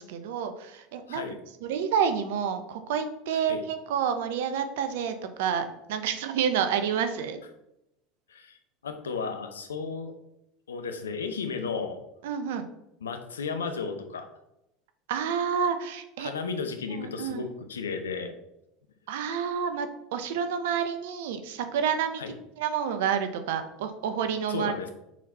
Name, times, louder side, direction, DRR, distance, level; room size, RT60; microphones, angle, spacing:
voice 1, 0.0-1.2 1.6-7.4 12.2-12.7 15.1-16.3 16.9-17.4 19.1-22.2 22.6-24.7, right 7 dB, 70° right, 8 dB, 0.7 m, -29 dB
voice 2, 3.3-3.6 8.3-10.1 10.7-12.0 13.0-14.3 16.2-18.3 22.2-22.3 24.5-24.9, left 5 dB, 85° left, 7 dB, 0.7 m, -34 dB
6.2 x 4.2 x 4.0 m, 0.86 s
hypercardioid pair, 75°, 0 cm